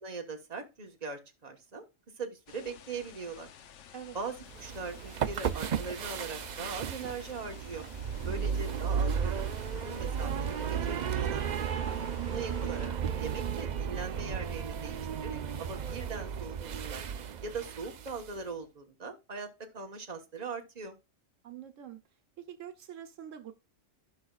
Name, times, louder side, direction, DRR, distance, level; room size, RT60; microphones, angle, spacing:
voice 1, 0.0-1.8 2.2-3.5 4.1-7.8 8.2-9.4 9.7-11.5 12.2-12.9 13.2-17.0 17.4-21.0, right 4 dB, 35° right, 1.4 m, -40 dB
sound 1, 2.5-12.9, left 7 dB, 70° left, 1.0 m, -53 dB
sound 2, 4.5-18.4, right 7 dB, 55° right, 0.5 m, -34 dB
voice 2, 8.2-8.8 11.8-12.1 21.4-22.0 22.4-23.5, right 9 dB, 80° right, 1.3 m, -46 dB
15.0 x 5.7 x 2.4 m
omnidirectional pair, 1.3 m